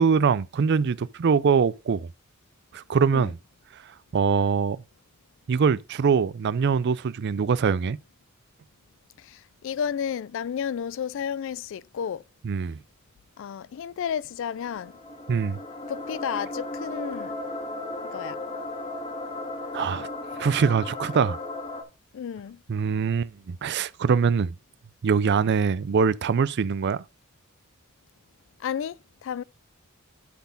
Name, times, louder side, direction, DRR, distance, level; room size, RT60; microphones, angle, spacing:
voice 1, 0.0-2.1 2.7-3.4 4.1-4.8 5.5-8.0 12.4-12.8 15.3-15.6 19.7-20.1 20.4-21.4 22.7-24.5 25.0-27.0, right 6 dB, 55° right, 0.4 m, -23 dB
voice 2, 9.2-12.2 13.4-14.9 15.9-17.3 18.1-18.4 22.1-22.6 28.6-29.0 29.2-29.4, left 8 dB, 65° left, 0.3 m, -32 dB
sound 1, 14.4-21.8, left 2 dB, 25° left, 1.6 m, -35 dB
11.5 x 4.2 x 3.9 m
head